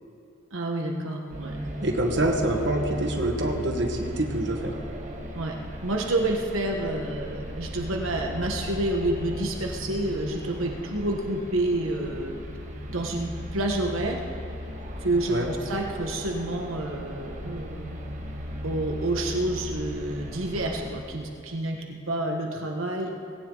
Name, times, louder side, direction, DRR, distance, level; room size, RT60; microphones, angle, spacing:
voice 1, 0.5-1.6 5.3-5.5 5.8-12.3 12.9-14.2 15.0-18.0 18.6-23.1, right 1 dB, 85° right, 1 dB, 1.4 m, -29 dB
sound 1, 1.3-21.0, equal, 35° right, 1.6 m, -37 dB
voice 2, 1.8-4.8 15.3-15.5, right 1 dB, 55° right, 2 dB, 1.6 m, -26 dB
19.0 x 17.0 x 4.0 m, 2.7 s
head